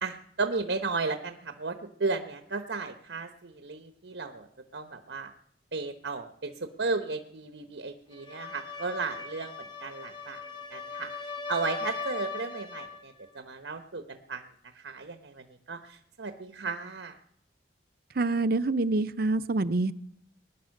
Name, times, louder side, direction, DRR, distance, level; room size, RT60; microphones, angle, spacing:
voice 1, 0.0-4.5 4.7-5.3 5.7-10.4 10.7-17.2, right 4 dB, 85° right, 7 dB, 1.1 m, -35 dB
sound 1, 8.1-13.0, left 4 dB, 25° left, 1.4 m, -39 dB
voice 2, 18.2-19.9, right 2 dB, 55° right, 15 dB, 0.6 m, -26 dB
20.0 x 10.0 x 6.5 m, 0.69 s
head